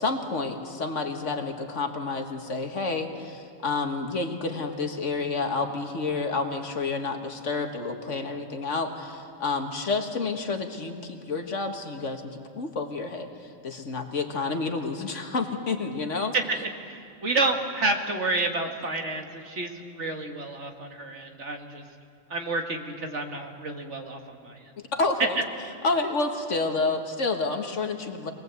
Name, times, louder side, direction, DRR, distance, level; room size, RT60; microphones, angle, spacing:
voice 1, 0.0-16.4 25.0-25.4 25.8-28.3, left 3 dB, 60° left, 5 dB, 1.9 m, -29 dB
voice 2, 16.8-21.8 22.3-24.6, right 2 dB, 55° right, 4 dB, 2.0 m, -30 dB
23.5 x 20.0 x 8.2 m, 2.3 s
omnidirectional pair, 1.4 m